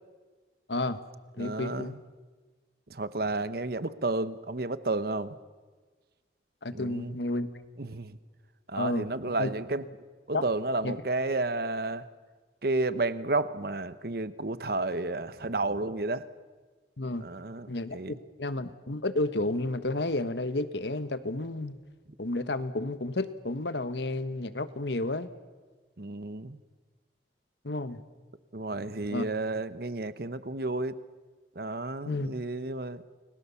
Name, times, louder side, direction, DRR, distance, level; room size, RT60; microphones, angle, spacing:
voice 1, 0.7-1.0 1.4-1.9 6.6-7.6 8.8-9.1 9.4-9.5 10.3-10.4 10.8-10.9 17.0-17.3 17.7-21.7 22.2-25.3 27.6-28.0 29.1-29.2 32.0-32.3, left 2 dB, 75° left, 11 dB, 1.4 m, -31 dB
voice 2, 1.4-2.0 2.9-5.4 6.7-7.2 7.8-8.2 8.7-9.9 10.3-12.1 12.6-16.3 17.2-18.2 26.0-26.6 28.5-31.0 31.5-33.0, right 2 dB, 55° right, 13 dB, 1.0 m, -31 dB
30.0 x 22.0 x 7.1 m, 1.4 s
head